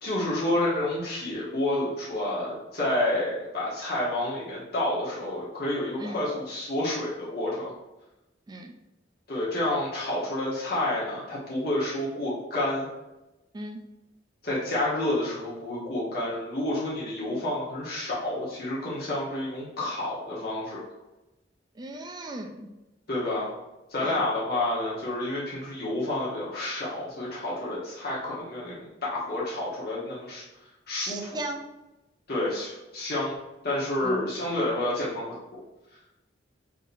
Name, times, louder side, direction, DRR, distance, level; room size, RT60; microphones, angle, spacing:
voice 1, 0.0-7.7 9.3-12.9 14.4-20.8 23.1-23.5 23.9-30.4 30.9-31.4 32.3-33.3 33.6-35.3, left 1 dB, 60° left, -7 dB, 1.1 m, -29 dB
voice 2, 21.8-22.7 24.0-24.2 31.0-31.6 34.0-34.3, right 1 dB, 25° right, 4 dB, 0.4 m, -37 dB
4.8 x 2.7 x 2.6 m, 1.0 s
head